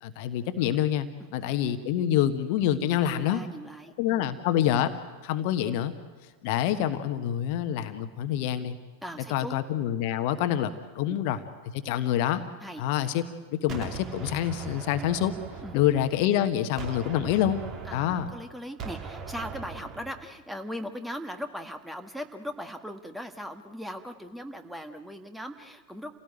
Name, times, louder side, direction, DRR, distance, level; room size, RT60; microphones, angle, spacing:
voice 1, 0.0-1.1 1.3-3.4 4.0-4.9 5.2-5.9 6.4-8.7 9.3-11.4 11.7-12.4 12.8-13.2 13.5-15.3 15.7-17.6 17.9-18.3, left 11 dB, 45° left, 10 dB, 1.3 m, -26 dB
voice 2, 3.0-4.3 9.0-9.6 11.0-11.2 12.6-12.8 15.6-15.8 17.8-26.2, equal, ahead, 7 dB, 1.5 m, -39 dB
Gunshot gunfire, 13.7-16.4 16.8-20.3, right 5 dB, 35° right, 2.9 m, -40 dB
28.5 x 17.5 x 9.2 m, 1.4 s
figure-of-eight pair, 90°, 0 cm